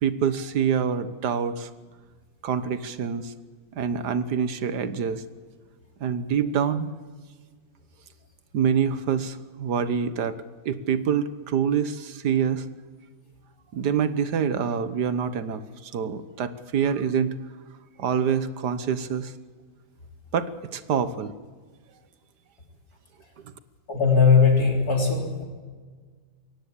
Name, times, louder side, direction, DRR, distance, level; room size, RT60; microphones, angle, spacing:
voice 1, 0.0-1.7 2.4-3.3 3.8-5.2 6.0-6.9 8.5-10.4 10.7-12.6 13.7-17.3 18.0-19.3 20.3-21.3, right 7 dB, 80° right, 12 dB, 1.7 m, -26 dB
voice 2, 23.9-25.4, left 5 dB, 65° left, 1 dB, 4.4 m, -19 dB
22.5 x 17.5 x 8.5 m, 1.5 s
omnidirectional pair, 1.7 m